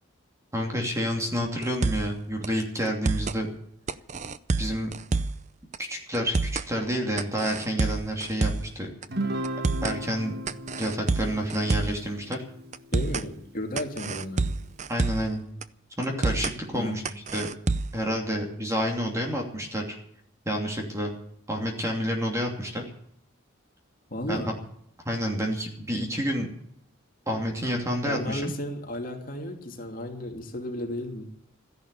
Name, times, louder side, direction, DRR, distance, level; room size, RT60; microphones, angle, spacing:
voice 1, 0.5-3.5 4.6-4.9 5.8-8.9 9.8-10.4 10.8-12.4 14.9-15.4 16.0-17.0 17.3-17.5 17.9-20.0 20.4-21.1 21.5-22.8 24.3-24.5 25.0-26.5 27.3-28.5, equal, 15° right, 1 dB, 2.7 m, -29 dB
sound 1, 1.6-2.1 2.4-2.5 2.8-3.4 3.9-5.4 5.7-5.8 6.1-6.7 7.2-8.7 9.0-9.1 9.4-10.0 10.5-12.0 12.3-12.4 12.7-13.3 13.8-15.3 15.6-15.7 16.0-16.6 17.0-18.0, right 3 dB, 35° right, 0.6 m, -28 dB
Guitar, 9.1-13.7, right 1 dB, 50° right, 1.5 m, -36 dB
voice 2, 12.9-14.6 16.7-17.1 24.1-24.5 28.0-31.3, left 1 dB, 40° left, 2 dB, 2.7 m, -34 dB
14.5 x 11.0 x 8.4 m, 0.69 s
head